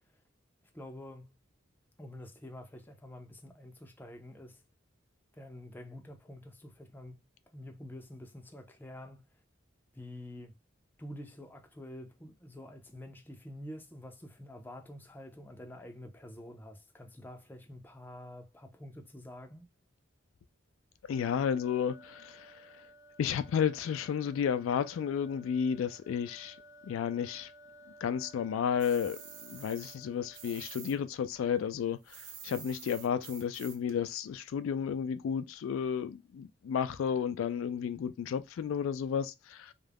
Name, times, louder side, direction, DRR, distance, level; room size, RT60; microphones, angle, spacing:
voice 1, 0.7-1.4 2.0-4.6 5.3-7.2 7.5-9.3 9.9-10.5 11.0-19.7, left 1 dB, 10° left, 0.4 m, -48 dB
voice 2, 21.1-22.7 23.2-26.6 26.8-27.5 28.0-39.7, left 7 dB, 80° left, 0.3 m, -32 dB
sound 1, 21.1-31.0, equal, 40° right, 1.0 m, -57 dB
sound 2, 28.8-31.0 31.2-33.9, right 8 dB, 60° right, 0.5 m, -48 dB
2.3 x 2.0 x 3.3 m
head